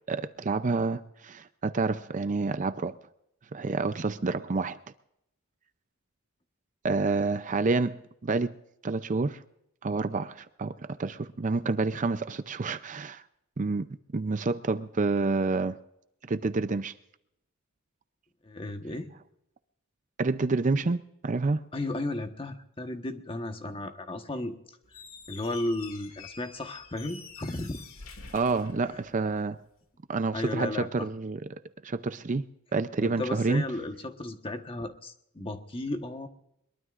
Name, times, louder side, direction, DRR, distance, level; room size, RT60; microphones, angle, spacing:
voice 1, 0.1-3.0 3.5-4.8 6.8-8.6 8.8-9.4 9.8-13.2 13.6-13.9 14.1-15.8 16.3-16.9 20.2-21.6 28.3-29.6 30.1-32.5 32.7-33.6, right 3 dB, 35° right, 0.5 m, -28 dB
voice 2, 18.4-19.1 21.7-24.6 25.3-27.8 28.8-29.0 30.3-31.1 33.0-36.3, left 2 dB, 25° left, 1.2 m, -34 dB
Squeak, 24.8-29.5, left 5 dB, 65° left, 1.9 m, -47 dB
22.0 x 22.0 x 2.5 m
head